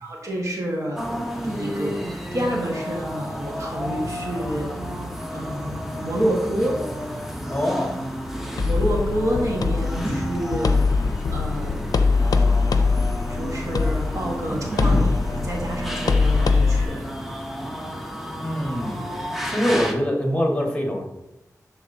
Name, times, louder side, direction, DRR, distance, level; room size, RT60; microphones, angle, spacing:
voice 1, 0.0-1.1 1.4-4.7 5.3-6.8 8.6-10.9 11.3-17.2, right 1 dB, 55° right, -2 dB, 1.5 m, -28 dB
sound 1, 1.0-19.9, equal, 5° right, 0.9 m, -31 dB
sound 2, 3.3-17.0, equal, 30° right, 1.0 m, -43 dB
voice 2, 7.5-8.0 18.3-18.9 19.4-21.0, equal, 15° left, 0 dB, 1.5 m, -24 dB
sound 3, 8.6-16.8, left 4 dB, 85° left, 0.5 m, -22 dB
11.5 x 4.0 x 2.7 m, 0.95 s
wide cardioid pair, 105°, 6 cm